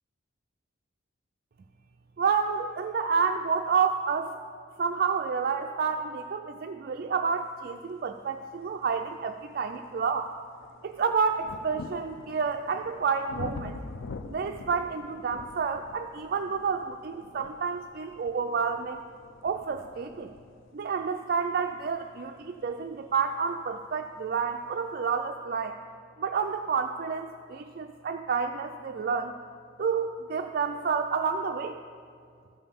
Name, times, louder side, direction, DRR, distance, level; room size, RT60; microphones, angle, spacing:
voice 1, 2.2-4.4 4.8-10.3 10.8-13.8 14.3-19.0 19.4-20.3 20.7-25.8 26.2-29.3 29.8-31.8, right 5 dB, 50° right, 5 dB, 0.3 m, -29 dB
sound 1, 8.5-8.6 9.2-23.9 24.8-24.9, left 4 dB, 75° left, 0.4 m, -46 dB
13.5 x 5.6 x 6.8 m, 2.3 s
head